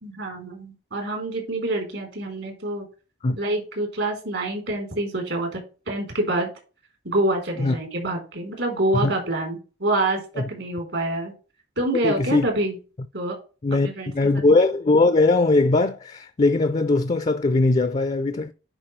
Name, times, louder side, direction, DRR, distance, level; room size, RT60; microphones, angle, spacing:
voice 1, 0.0-2.9 3.4-5.6 5.9-6.5 7.0-10.2 10.5-11.3 11.8-12.8 13.1-13.4 13.8-14.5, right 1 dB, 75° right, 3.8 m, -26 dB
voice 2, 12.0-12.5 13.6-13.9 14.1-18.5, left 3 dB, 35° left, 0.5 m, -20 dB
10.0 x 4.9 x 3.2 m
head